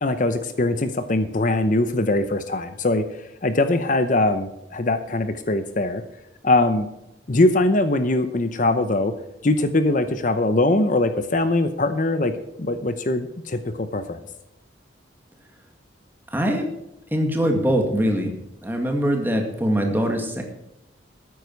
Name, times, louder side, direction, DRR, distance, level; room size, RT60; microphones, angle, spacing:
voice 1, 0.0-6.0 6.4-6.9 7.3-9.1 9.4-12.3 12.6-14.2, left 2 dB, 45° left, 10 dB, 0.7 m, -22 dB
voice 2, 16.3-16.7 17.1-18.4 18.6-20.4, equal, 10° right, 2 dB, 1.9 m, -22 dB
13.5 x 9.6 x 4.6 m, 0.86 s
head